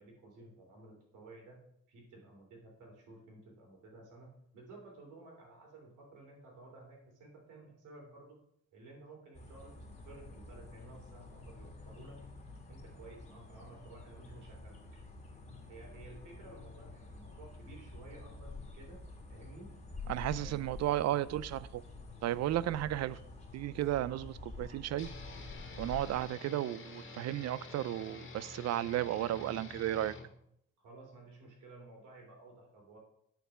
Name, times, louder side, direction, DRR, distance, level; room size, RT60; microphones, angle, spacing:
voice 1, 0.0-1.6 1.9-8.4 8.7-12.2 12.7-14.8 15.7-19.0 19.3-19.7 20.3-20.7 30.8-33.0, right 2 dB, 85° right, 3.1 m, -54 dB
sound 1, 9.3-26.2, left 3 dB, 20° left, 1.9 m, -49 dB
voice 2, 20.1-21.8 22.2-23.2 23.5-25.1 25.8-30.1, right 13 dB, 60° right, 0.4 m, -34 dB
sound 2, 25.0-30.3, left 3 dB, 40° left, 1.8 m, -48 dB
9.1 x 4.7 x 5.0 m
cardioid pair, 90°, 30 cm